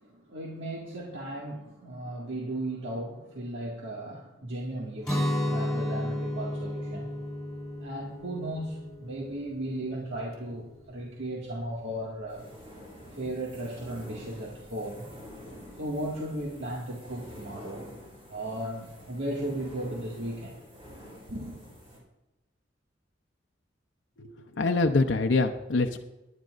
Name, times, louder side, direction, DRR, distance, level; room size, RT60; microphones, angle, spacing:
voice 1, 0.0-7.1 7.8-12.5 13.1-15.1 15.8-17.8 18.3-20.6 21.3-21.6, right 1 dB, 75° right, -3 dB, 1.9 m, -36 dB
Guitar, 5.0-10.9, left 1 dB, 5° left, 3.2 m, -33 dB
sound 1, 12.3-22.0, equal, 30° right, 4.2 m, -48 dB
voice 2, 24.2-26.0, left 3 dB, 85° left, 5 dB, 0.6 m, -25 dB
20.0 x 10.5 x 2.5 m, 1.0 s
head